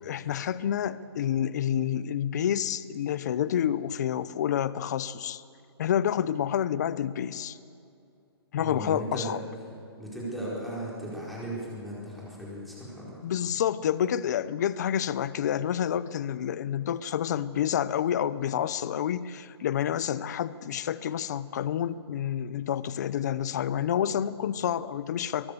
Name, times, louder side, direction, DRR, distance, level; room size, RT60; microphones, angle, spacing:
voice 1, 0.0-5.4 5.8-7.6 8.5-9.4 13.2-25.5, left 9 dB, 40° left, 17 dB, 0.6 m, -29 dB
voice 2, 8.6-9.3 10.0-13.1, right 1 dB, ahead, -7 dB, 4.6 m, -36 dB
23.5 x 20.0 x 6.8 m, 2.5 s
hypercardioid pair, 170°, 14 cm